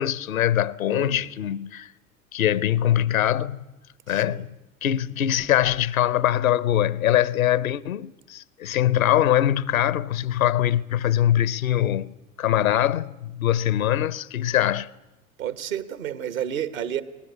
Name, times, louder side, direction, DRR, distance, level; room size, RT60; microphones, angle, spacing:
voice 1, 0.0-1.9 2.3-3.6 4.1-4.5 4.8-14.9, left 11 dB, 75° left, 0.7 m, -23 dB
voice 2, 0.9-1.3 4.1-4.5 15.4-17.0, right 10 dB, 70° right, 1.3 m, -31 dB
21.5 x 18.5 x 8.3 m
figure-of-eight pair, 75°, 42 cm